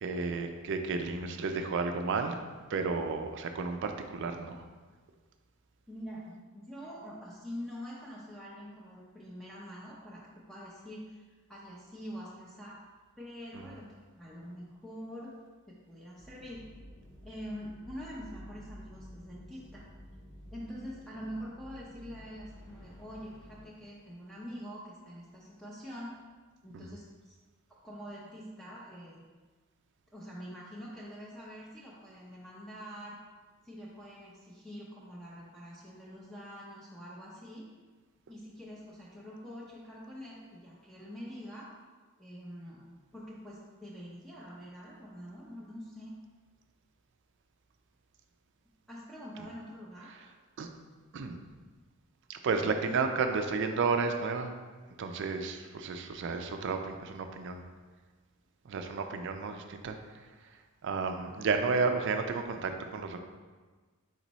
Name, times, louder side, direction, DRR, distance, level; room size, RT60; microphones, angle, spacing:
voice 1, 0.0-2.4 2.7-4.6 13.5-13.7 26.7-26.8 50.6-50.7 51.1-51.4 52.3-54.5 55.0-57.6 58.7-60.0 60.8-63.2, right 4 dB, 55° right, 6 dB, 0.4 m, -32 dB
voice 2, 5.9-11.2 11.5-12.8 13.2-13.9 14.2-15.4 15.7-16.6 17.2-19.8 20.5-26.2 26.6-27.3 27.8-29.2 30.1-33.2 33.6-37.7 38.3-41.7 42.2-42.8 43.1-46.2 48.9-50.1, equal, ahead, -7 dB, 0.5 m, -45 dB
sound 1, 16.2-23.6, equal, 60° left, 1.4 m, -51 dB
4.4 x 4.0 x 3.0 m, 1.4 s
head